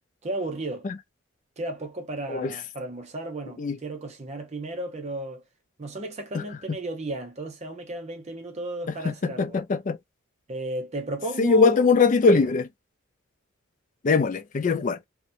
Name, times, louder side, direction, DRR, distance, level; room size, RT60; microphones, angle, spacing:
voice 1, 0.2-0.9 1.6-5.4 5.8-9.6 10.5-12.0 12.3-12.5, right 2 dB, 35° right, 0.5 m, -34 dB
voice 2, 9.4-10.0 11.4-12.6 14.0-15.0, left 4 dB, 40° left, 0.3 m, -21 dB
2.8 x 2.1 x 2.4 m
head